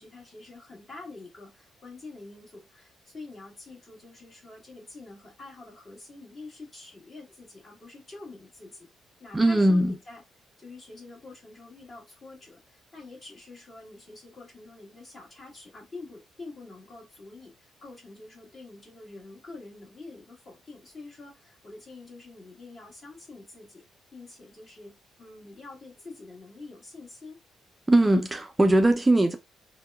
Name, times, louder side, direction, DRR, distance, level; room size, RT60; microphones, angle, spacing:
voice 1, 0.0-8.9 9.2-10.2 10.6-23.8 24.1-27.4, left 3 dB, 40° left, 1.4 m, -46 dB
voice 2, 9.3-9.9 27.9-29.4, right 1 dB, 15° right, 0.3 m, -20 dB
2.7 x 2.1 x 2.2 m
cardioid pair, 90°, 0 cm